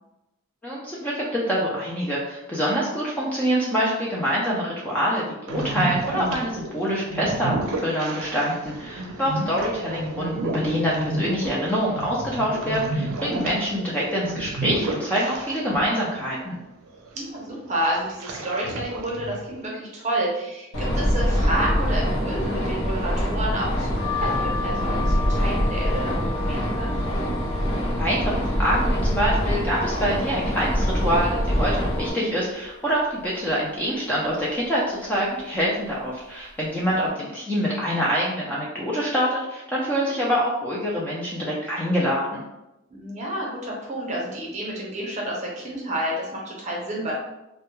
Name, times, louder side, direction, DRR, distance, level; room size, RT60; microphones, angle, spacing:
voice 1, 0.6-16.6 28.0-42.4, equal, 10° left, -6 dB, 0.3 m, -25 dB
sound 1, 5.5-15.9 16.2-16.3 16.9-17.3 17.8-19.6, right 2 dB, 90° right, 0.5 m, -31 dB
voice 2, 17.1-27.0 37.2-37.3 42.9-47.1, right 1 dB, 35° right, -3 dB, 0.7 m, -30 dB
sound 2, 20.7-32.1, equal, 90° left, 0.7 m, -24 dB
sound 3, 24.0-29.6 30.1-30.9 31.3-31.4 31.5-32.7 33.1-33.5 34.3-34.6 35.4-35.6 35.9-36.1, left 6 dB, 25° left, 0.8 m, -36 dB
2.2 x 2.1 x 3.0 m, 0.93 s
head